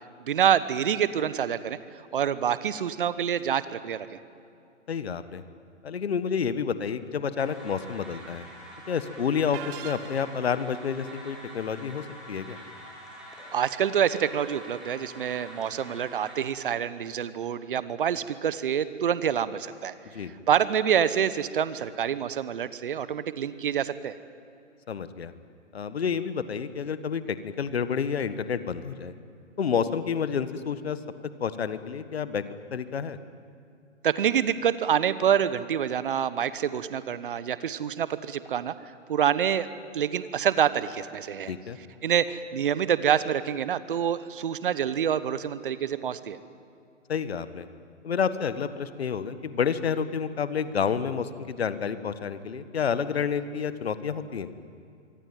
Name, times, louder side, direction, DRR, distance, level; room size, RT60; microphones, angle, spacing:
voice 1, 0.2-1.8 2.1-4.2 13.5-19.9 20.5-24.2 34.0-38.7 39.1-39.7 39.9-41.5 42.0-46.4, right 8 dB, 45° right, 15 dB, 1.2 m, -26 dB
voice 2, 4.9-5.4 5.8-8.5 8.9-12.6 20.1-20.3 24.9-25.3 25.7-29.1 29.6-31.0 31.4-32.4 32.7-33.2 41.5-41.8 47.1-47.7 48.0-54.5, left 6 dB, 55° left, 13 dB, 1.6 m, -29 dB
sound 1, 7.4-16.4, equal, ahead, 7.6 m, -46 dB
sound 2, 9.5-10.6, right 10 dB, 20° right, 1.1 m, -41 dB
25.5 x 23.5 x 9.2 m, 2.5 s
figure-of-eight pair, 125°, 37 cm